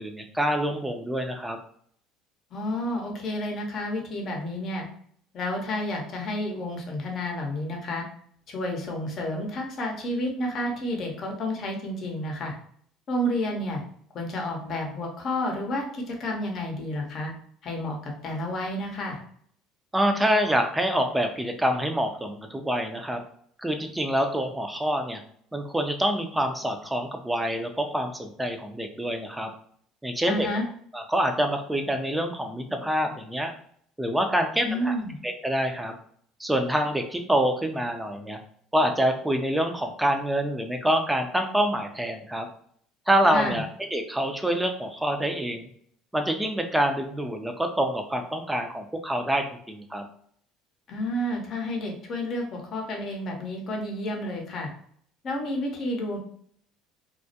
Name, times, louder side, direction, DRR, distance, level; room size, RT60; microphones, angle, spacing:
voice 1, 0.0-1.6 19.9-23.2 23.6-25.2 25.5-29.5 30.0-30.5 30.9-33.5 34.0-34.9 35.2-35.9 36.4-38.4 38.7-42.5 43.1-45.7 46.1-50.1, equal, 10° right, 5 dB, 0.5 m, -26 dB
voice 2, 2.5-4.9 5.3-8.0 8.5-12.5 13.1-13.8 14.1-17.3 17.6-19.2 30.3-30.6 34.6-35.2 43.3-43.6 50.9-54.7 55.2-56.2, left 1 dB, 50° left, 1 dB, 0.7 m, -30 dB
2.3 x 2.0 x 2.7 m, 0.63 s
supercardioid pair, 80°, 0 cm